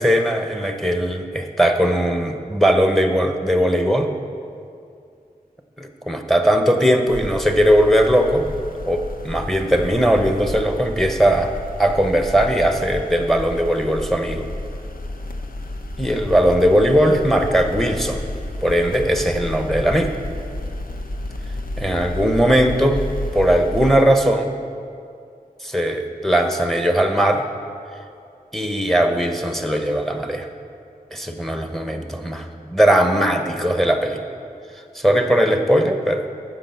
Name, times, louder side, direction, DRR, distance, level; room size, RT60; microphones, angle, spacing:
voice 1, 0.0-4.1 5.8-8.4 8.9-11.5 11.8-14.5 16.0-18.2 18.6-20.1 21.8-23.0 23.3-24.5 25.6-27.4 28.5-30.5 31.1-34.2 34.9-36.2, equal, ahead, 5 dB, 0.9 m, -19 dB
sound 1, 7.1-24.0, left 1 dB, 70° left, 0.8 m, -31 dB
10.0 x 6.4 x 8.1 m, 2.4 s
wide cardioid pair, 75°, 15 cm